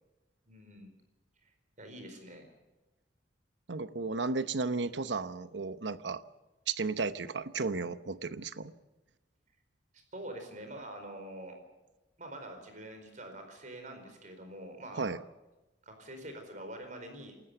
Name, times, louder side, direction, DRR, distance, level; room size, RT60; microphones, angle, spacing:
voice 1, 0.5-0.9 1.4-1.5 1.8-2.5 9.9-11.6 12.2-15.1 15.8-17.3, right 1 dB, 45° right, 5 dB, 4.5 m, -45 dB
voice 2, 3.7-6.2 6.7-8.7 15.0-15.2, right 4 dB, 75° right, 13 dB, 0.9 m, -34 dB
28.0 x 13.5 x 6.9 m, 1.1 s
head